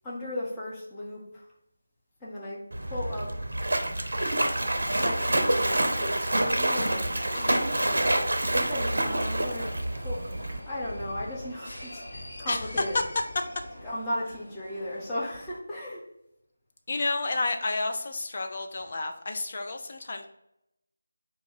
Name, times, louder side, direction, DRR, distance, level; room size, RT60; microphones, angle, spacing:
voice 1, 0.0-1.4 2.2-3.3 4.9-7.2 8.4-13.1 13.8-16.0, left 1 dB, 10° left, -8 dB, 0.8 m, -36 dB
Splash splatter, 2.7-10.6, right 1 dB, 60° right, 0.6 m, -27 dB
sound 1, 6.5-15.6, left 1 dB, 70° left, 0.8 m, -44 dB
voice 2, 16.9-20.2, left 2 dB, 40° left, 4 dB, 0.5 m, -31 dB
3.8 x 2.4 x 4.5 m, 0.82 s
figure-of-eight pair, 160°, 0 cm